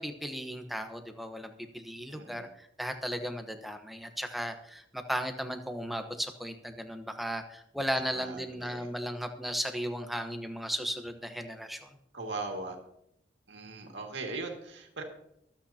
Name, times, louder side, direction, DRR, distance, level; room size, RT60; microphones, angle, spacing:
voice 1, 0.0-11.9, equal, ahead, 5 dB, 1.0 m, -36 dB
voice 2, 2.1-2.5 8.1-8.9 12.1-12.8 13.5-15.0, right 3 dB, 75° right, 2 dB, 2.1 m, -39 dB
24.5 x 8.7 x 2.9 m, 0.78 s
head